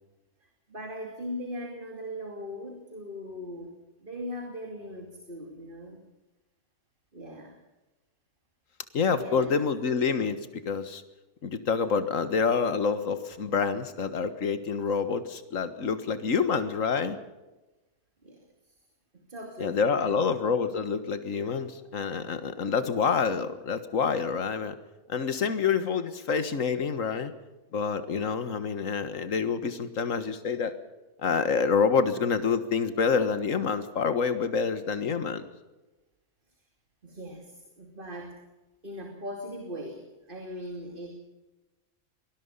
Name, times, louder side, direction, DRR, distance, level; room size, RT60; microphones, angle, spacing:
voice 1, 0.4-3.7 4.0-6.0 7.1-7.6 9.1-9.5 18.2-18.4 19.1-20.2 37.0-38.4 38.8-41.1, equal, 35° right, 3 dB, 2.9 m, -39 dB
voice 2, 8.9-10.4 10.7-11.0 11.4-17.2 19.6-24.7 25.1-27.3 27.7-30.7 31.2-35.4, left 5 dB, 60° left, 11 dB, 1.9 m, -27 dB
24.0 x 20.0 x 5.5 m, 1.1 s
omnidirectional pair, 1.5 m